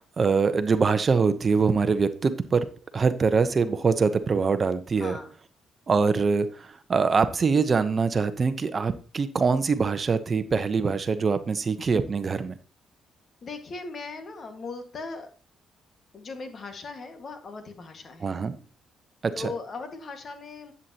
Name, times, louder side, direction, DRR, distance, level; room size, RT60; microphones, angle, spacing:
voice 1, 0.0-2.7 2.9-5.2 5.9-12.6 18.2-18.5 19.2-19.5, right 5 dB, 40° right, 11 dB, 0.9 m, -24 dB
voice 2, 5.0-5.3 13.4-15.3 16.1-18.4 19.3-20.7, left 3 dB, 45° left, 6 dB, 1.7 m, -38 dB
10.5 x 8.3 x 2.9 m, 0.38 s
cardioid pair, 90°, 0 cm